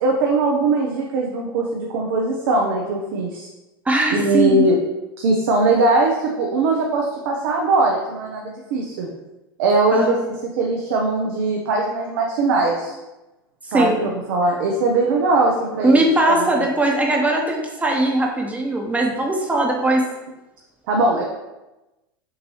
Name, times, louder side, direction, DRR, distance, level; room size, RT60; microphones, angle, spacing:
voice 1, 0.0-3.5 4.1-4.8 5.2-9.1 9.6-10.2 10.6-12.9 13.7-16.0 16.3-16.4 20.9-21.2, right 2 dB, 65° right, 0 dB, 0.7 m, -20 dB
voice 2, 3.9-4.6 9.9-10.2 13.7-14.0 15.8-20.0, right 2 dB, 10° right, 0 dB, 1.0 m, -19 dB
6.4 x 2.6 x 3.0 m, 1.0 s
hypercardioid pair, 90°, 12 cm